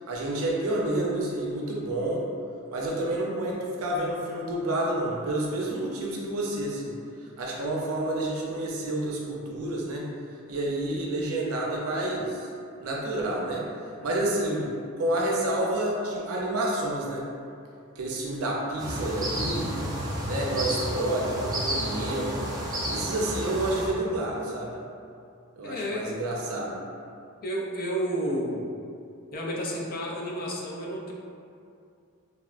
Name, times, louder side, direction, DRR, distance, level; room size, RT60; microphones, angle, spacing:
voice 1, 0.1-2.2 2.7-6.9 7.4-10.0 10.5-12.5 12.8-13.6 14.0-14.7 15.0-17.3 18.0-19.8 20.3-22.4 22.9-24.7 25.6-26.8, right 1 dB, 80° right, -3 dB, 0.5 m, -29 dB
sound 1, 18.8-23.9, equal, 20° right, 0.4 m, -31 dB
voice 2, 25.6-26.1 27.4-28.7 29.3-31.1, equal, 45° left, -2 dB, 0.4 m, -31 dB
3.4 x 2.1 x 2.4 m, 2.5 s
head